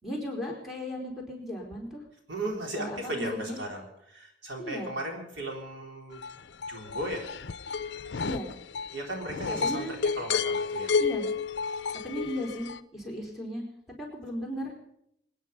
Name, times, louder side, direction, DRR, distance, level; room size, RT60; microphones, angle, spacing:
voice 1, 0.0-2.0 2.7-3.6 4.6-4.9 8.2-8.5 9.6-10.0 11.0-11.2 12.0-13.6 14.0-14.7, equal, ahead, -1 dB, 4.3 m, -36 dB
voice 2, 2.3-6.2 6.7-7.3 7.9-8.2 8.9-10.9, right 1 dB, 75° right, 1 dB, 3.9 m, -36 dB
sound 1, 6.2-12.8, left 5 dB, 65° left, 0.6 m, -31 dB
25.0 x 9.9 x 5.4 m, 0.73 s
head